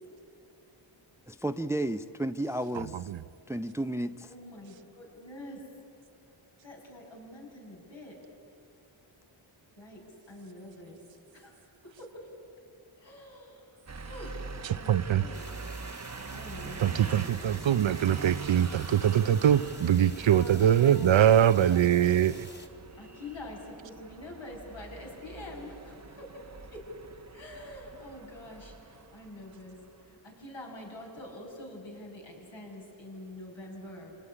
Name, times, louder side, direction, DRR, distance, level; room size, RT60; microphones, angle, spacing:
voice 1, 1.3-3.1 3.5-4.3, right 1 dB, 5° right, 11 dB, 0.7 m, -32 dB
voice 2, 2.7-3.2 14.7-15.3 16.8-22.4, right 10 dB, 65° right, 15 dB, 0.7 m, -23 dB
voice 3, 4.2-5.7 6.6-8.2 9.8-11.0 11.3-12.3 13.0-15.5 16.3-17.7 20.1-22.0 23.0-26.9 27.3-34.2, left 1 dB, 60° left, -1 dB, 7.1 m, -46 dB
sound 1, 13.9-30.0, right 4 dB, 35° right, 1.0 m, -44 dB
sound 2, 15.3-22.7, left 1 dB, 20° left, 2.5 m, -50 dB
27.0 x 18.5 x 9.9 m, 2.8 s
cardioid pair, 55°, 49 cm